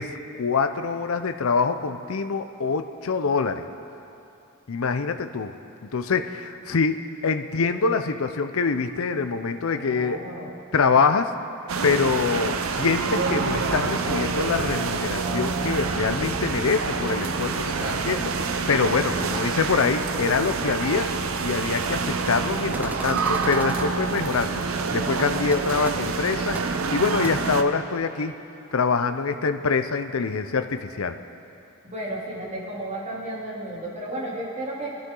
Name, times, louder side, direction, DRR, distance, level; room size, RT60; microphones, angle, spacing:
voice 1, 0.0-3.7 4.7-5.5 5.9-7.0 7.2-10.2 10.7-11.3 11.8-21.1 21.4-24.6 24.9-26.6 26.9-28.3 28.7-31.2, left 5 dB, 70° left, 9 dB, 0.6 m, -25 dB
voice 2, 9.7-10.5 19.1-19.2 31.8-35.0, right 1 dB, 35° right, -6 dB, 3.1 m, -33 dB
sound 1, 11.7-27.6, right 4 dB, 70° right, 0.7 m, -27 dB
sound 2, 11.8-20.1, right 1 dB, 10° left, 2.9 m, -40 dB
sound 3, 22.7-23.9 25.5-25.6 25.8-25.9 26.5-26.6 27.2-27.3, right 1 dB, 5° right, 0.4 m, -35 dB
21.0 x 12.5 x 3.8 m, 2.7 s
head